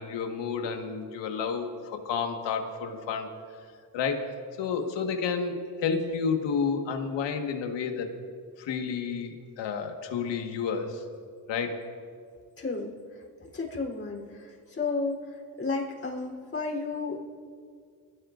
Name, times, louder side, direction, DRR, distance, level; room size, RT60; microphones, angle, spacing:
voice 1, 0.0-3.3 3.9-8.1 8.6-11.0 11.5-11.8, left 5 dB, 90° left, 4 dB, 1.8 m, -31 dB
voice 2, 12.6-13.2 13.5-17.2, left 3 dB, 30° left, -2 dB, 3.8 m, -33 dB
25.0 x 16.5 x 2.6 m, 2.1 s
cardioid pair, 95°, 42 cm